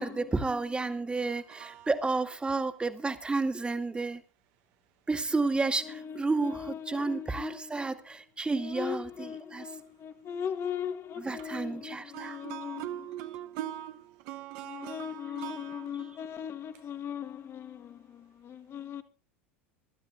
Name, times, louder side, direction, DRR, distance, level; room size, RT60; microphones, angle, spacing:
voice 1, 0.0-4.2 5.1-9.7 11.2-12.4 15.9-16.1, right 3 dB, 15° right, 1.8 m, -31 dB
voice 2, 6.0-7.7 8.6-12.8 14.6-19.0, left 8 dB, 35° left, 1.4 m, -39 dB
voice 3, 12.1-16.1, right 12 dB, 55° right, 1.0 m, -41 dB
24.5 x 12.5 x 2.5 m
hypercardioid pair, 80°, 7 cm